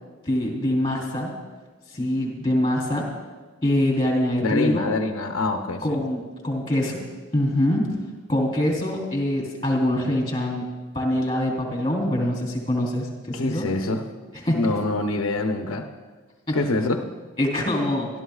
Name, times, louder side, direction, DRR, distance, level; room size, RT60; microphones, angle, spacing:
voice 1, 0.2-1.3 1.9-3.0 3.6-4.9 5.8-7.0 7.3-8.0 8.3-10.6 10.9-13.6 14.4-14.6 16.5-16.6 17.4-18.1, left 1 dB, 25° left, -2 dB, 3.3 m, -24 dB
voice 2, 4.4-6.0 13.3-14.1 14.5-15.9 16.5-17.1, left 2 dB, 90° left, 4 dB, 0.8 m, -25 dB
24.5 x 12.5 x 2.4 m, 1.4 s
head